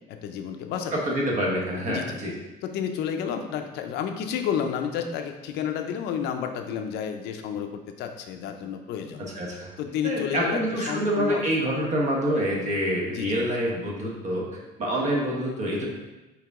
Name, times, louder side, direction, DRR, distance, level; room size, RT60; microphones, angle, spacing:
voice 1, 0.1-1.3 1.9-2.2 2.6-11.4 13.1-13.4, left 8 dB, 85° left, 6 dB, 0.5 m, -31 dB
voice 2, 0.9-2.3 9.3-9.7 10.0-14.5 14.8-15.9, equal, 45° right, -3 dB, 1.2 m, -26 dB
4.7 x 2.8 x 3.6 m, 1.1 s
cardioid pair, 110°, 17 cm